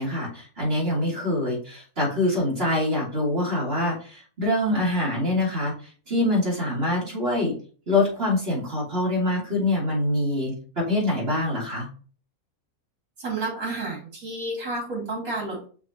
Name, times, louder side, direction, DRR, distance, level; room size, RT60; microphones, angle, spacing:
voice 1, 0.0-5.7 6.1-7.6 7.9-11.9, left 1 dB, 40° right, -5 dB, 3.3 m, -25 dB
voice 2, 13.2-15.7, right 2 dB, 75° right, -1 dB, 2.9 m, -30 dB
5.9 x 3.6 x 4.5 m, 0.42 s
omnidirectional pair, 1.5 m